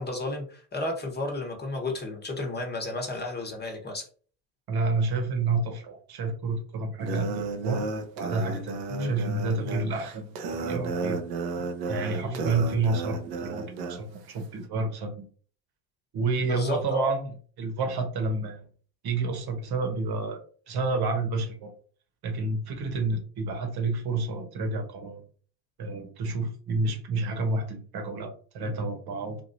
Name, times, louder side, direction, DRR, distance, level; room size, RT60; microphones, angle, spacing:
voice 1, 0.0-4.1 8.9-9.1 9.6-9.8 12.2-12.4 16.5-17.1 28.6-28.7, left 2 dB, 20° left, 2 dB, 1.2 m, -32 dB
voice 2, 4.7-7.9 8.1-11.2 11.9-15.3 16.1-17.3 17.6-18.6 19.0-20.4 20.7-21.7 22.2-25.3 25.8-29.4, right 3 dB, 50° right, 4 dB, 1.2 m, -29 dB
sound 1, 7.0-14.0, right 4 dB, 90° right, 0.7 m, -33 dB
3.1 x 2.5 x 2.6 m, 0.43 s
hypercardioid pair, 80°, 50 cm